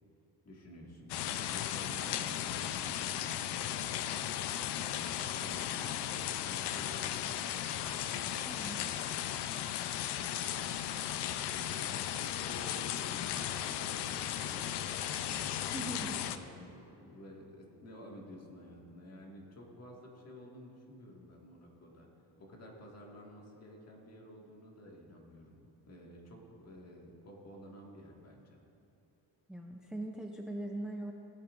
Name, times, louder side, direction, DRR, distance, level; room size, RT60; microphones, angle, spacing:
voice 1, 0.4-3.8 4.7-10.8 11.5-15.1 16.2-22.1 22.4-28.6, left 1 dB, 35° left, -1 dB, 1.8 m, -52 dB
sound 1, 1.1-16.4, left 11 dB, 70° left, 0.6 m, -36 dB
voice 2, 8.5-8.8 15.7-16.2 29.5-31.1, right 1 dB, ahead, 1 dB, 0.4 m, -40 dB
16.5 x 8.7 x 2.5 m, 2.9 s
cardioid pair, 125°, 43 cm